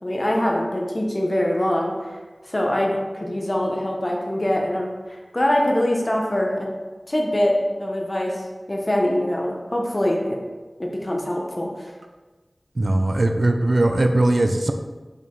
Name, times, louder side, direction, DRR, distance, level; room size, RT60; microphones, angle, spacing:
voice 1, 0.0-2.2 2.4-6.7 7.1-7.5 7.8-10.4 10.8-11.9, left 1 dB, 35° left, 0 dB, 1.1 m, -23 dB
voice 2, 12.8-14.7, right 2 dB, 65° right, 5 dB, 0.5 m, -19 dB
5.3 x 4.9 x 3.9 m, 1.3 s
wide cardioid pair, 55°, 0 cm